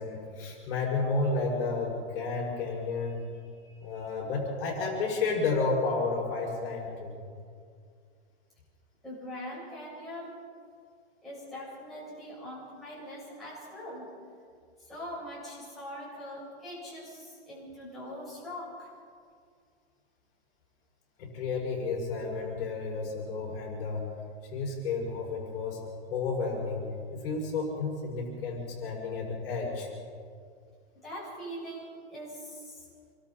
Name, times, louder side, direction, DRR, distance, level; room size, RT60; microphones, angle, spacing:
voice 1, 0.0-3.2 3.6-7.2 21.2-24.1 24.4-29.9, left 4 dB, 55° left, -2 dB, 5.9 m, -32 dB
voice 2, 9.0-10.4 11.2-14.1 14.8-18.9 31.0-32.8, equal, ahead, -11 dB, 7.5 m, -42 dB
27.5 x 23.0 x 4.3 m, 2.2 s
supercardioid pair, 175°, 34 cm